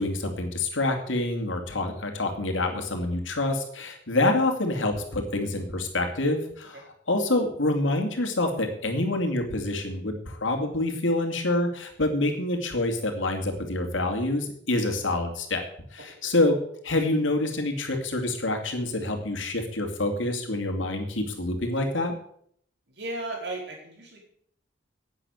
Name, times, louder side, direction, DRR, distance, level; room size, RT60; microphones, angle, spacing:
voice 1, 0.0-15.6 15.9-16.5 16.8-22.1, left 2 dB, 90° left, 4 dB, 2.6 m, -27 dB
voice 2, 22.9-24.2, right 2 dB, 60° right, -1 dB, 4.8 m, -36 dB
11.0 x 9.0 x 8.1 m, 0.66 s
head